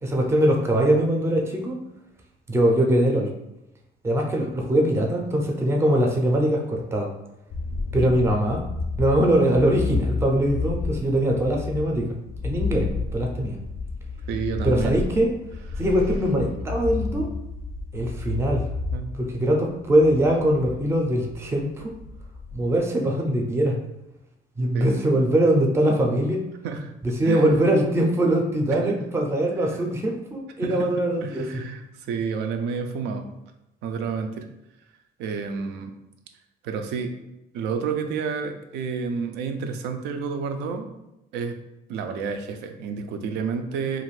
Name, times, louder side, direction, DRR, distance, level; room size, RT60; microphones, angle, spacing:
voice 1, 0.0-1.8 2.5-3.3 4.0-7.1 7.9-8.6 9.0-12.2 12.4-13.6 14.6-15.3 15.8-17.3 17.9-18.6 19.1-21.9 22.5-23.8 24.6-26.4 27.0-31.6, right 1 dB, 15° right, 1 dB, 0.4 m, -22 dB
sound 1, 7.5-22.8, left 4 dB, 50° left, 0.4 m, -31 dB
voice 2, 14.3-15.0 15.7-15.8 18.9-19.1 24.7-24.9 26.6-26.9 27.2-27.5 28.7-29.0 30.6-30.9 31.2-33.3 33.8-34.5 35.2-35.9 36.6-37.1 37.5-40.9 41.3-41.6 41.9-44.0, right 5 dB, 85° right, 6 dB, 0.4 m, -30 dB
2.5 x 2.4 x 3.1 m, 0.90 s
cardioid pair, 110°, 17 cm